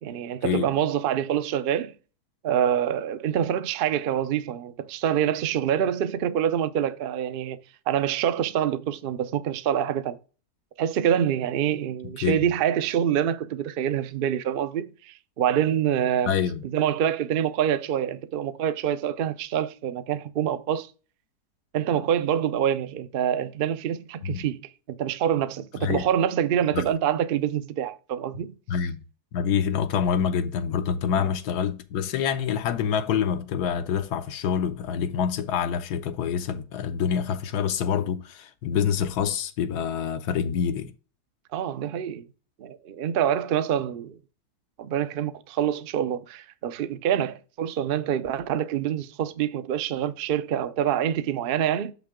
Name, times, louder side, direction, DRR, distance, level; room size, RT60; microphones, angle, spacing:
voice 1, 0.0-1.9 2.4-7.6 7.9-10.2 10.8-16.3 16.6-20.9 21.7-24.6 24.9-28.5 31.2-31.3 41.5-42.2 42.6-44.2 44.8-51.9, right 9 dB, 85° right, 0.5 m, -26 dB
voice 2, 16.3-16.6 24.2-24.4 25.8-26.1 26.7-26.8 28.7-29.0 29.3-40.9, left 8 dB, 90° left, 1.2 m, -26 dB
6.6 x 5.8 x 3.6 m
omnidirectional pair, 1.7 m